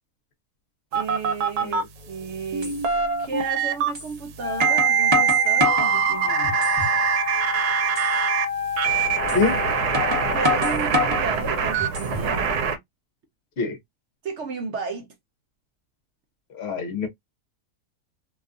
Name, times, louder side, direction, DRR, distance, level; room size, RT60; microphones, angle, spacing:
voice 1, 0.9-1.8 2.1-2.8 3.2-6.6 10.3-12.8 14.2-15.1, right 4 dB, 60° right, 0.8 m, -33 dB
sound 1, 0.9-1.8 2.5-3.9 4.6-8.5 8.8-12.8, right 7 dB, 80° right, 1.1 m, -23 dB
sound 2, 2.0-2.1 2.6-2.8 3.9-4.1 4.6-5.9 6.4-7.0 7.4-7.5 7.9-8.1 9.3-9.4 9.9-11.3 11.8-12.3, left 2 dB, 25° right, 0.6 m, -26 dB
Wind instrument woodwind instrument, 4.4-10.5, left 8 dB, 20° left, 0.4 m, -30 dB
voice 2, 16.5-17.1, left 4 dB, 55° left, 0.8 m, -25 dB
2.7 x 2.4 x 2.4 m
omnidirectional pair, 1.7 m